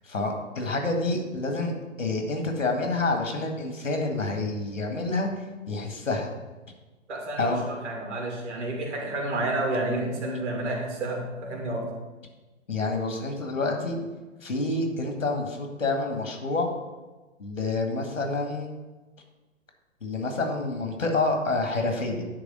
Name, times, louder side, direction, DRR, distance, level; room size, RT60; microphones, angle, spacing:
voice 1, 0.0-1.7 2.0-5.3 5.7-6.3 7.4-7.6 12.7-14.0 14.4-16.7 17.4-18.7 20.0-22.2, left 3 dB, 80° left, 3 dB, 1.9 m, -28 dB
voice 2, 7.1-11.9, right 2 dB, 65° right, 0 dB, 2.5 m, -30 dB
9.8 x 3.4 x 6.4 m, 1.2 s
figure-of-eight pair, 120°, 38 cm